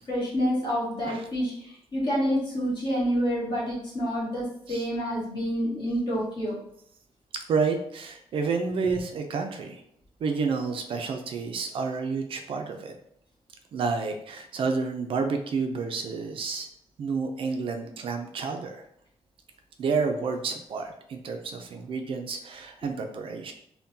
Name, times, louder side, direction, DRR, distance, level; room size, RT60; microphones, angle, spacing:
voice 1, 0.1-6.6, equal, 45° left, -6 dB, 1.4 m, -28 dB
voice 2, 7.5-9.8 10.2-13.0 13.7-16.7 17.0-18.8 19.8-23.5, right 4 dB, 55° right, 5 dB, 0.4 m, -30 dB
3.6 x 2.1 x 2.7 m, 0.70 s
wide cardioid pair, 160°, 11 cm